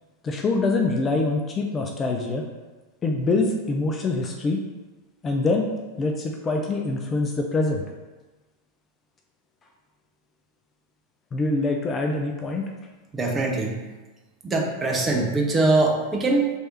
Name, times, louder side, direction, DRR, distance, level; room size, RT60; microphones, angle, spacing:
voice 1, 0.2-2.5 3.0-4.6 5.2-5.7 6.0-7.8 11.3-12.6, left 3 dB, 20° left, 2 dB, 0.4 m, -24 dB
voice 2, 13.1-13.8 14.4-16.5, right 2 dB, 15° right, 1 dB, 0.6 m, -22 dB
3.2 x 2.7 x 4.5 m, 1.2 s
figure-of-eight pair, 90°, 0 cm